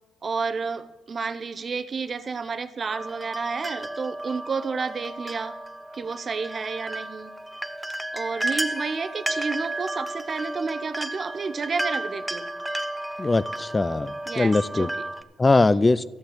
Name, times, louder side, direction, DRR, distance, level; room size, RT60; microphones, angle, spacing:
voice 1, 0.2-5.5 5.9-7.3 8.1-12.5 14.3-14.9 15.7-16.0, right 5 dB, 40° right, 12 dB, 0.7 m, -31 dB
sound 1, 2.9-15.2, right 1 dB, 5° right, 0.7 m, -33 dB
voice 2, 13.2-14.9 15.4-16.0, left 3 dB, 20° left, 17 dB, 0.3 m, -21 dB
13.0 x 6.5 x 7.2 m, 1.1 s
cardioid pair, 90°, 0 cm